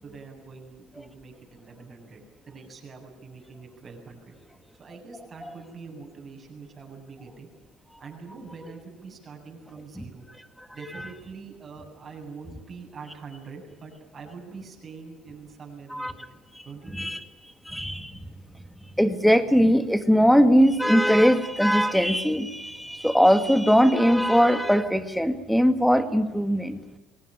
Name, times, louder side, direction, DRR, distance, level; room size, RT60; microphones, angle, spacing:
voice 1, 0.0-4.4 4.8-7.5 8.0-10.3 10.7-17.1, right 4 dB, 35° right, 0 dB, 7.9 m, -44 dB
voice 2, 17.7-18.2 19.0-26.8, equal, ahead, 9 dB, 1.9 m, -20 dB
22.5 x 18.5 x 9.9 m, 1.2 s
cardioid pair, 105°, 0 cm